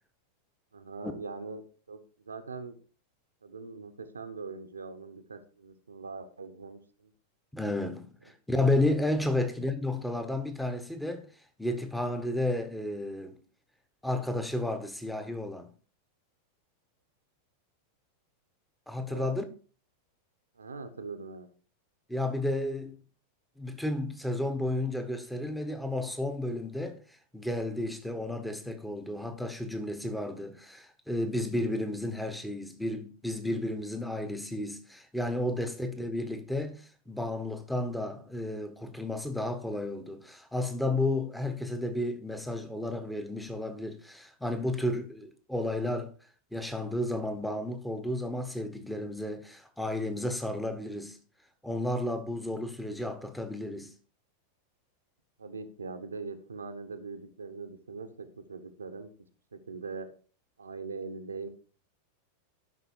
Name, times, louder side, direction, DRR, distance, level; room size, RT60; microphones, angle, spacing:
voice 1, 0.7-1.6 1.9-2.7 3.4-7.1 19.1-19.4 20.6-21.5 35.6-35.7 55.4-59.1 59.5-60.1 60.6-61.5, right 4 dB, 75° right, 1.3 m, -41 dB
voice 2, 7.5-11.3 11.6-13.4 14.0-15.7 18.9-19.4 22.1-23.0 23.6-27.0 27.3-46.1 46.5-51.2 51.6-53.9, left 1 dB, ahead, 1.4 m, -32 dB
12.0 x 6.1 x 4.7 m
figure-of-eight pair, 90°, 0 cm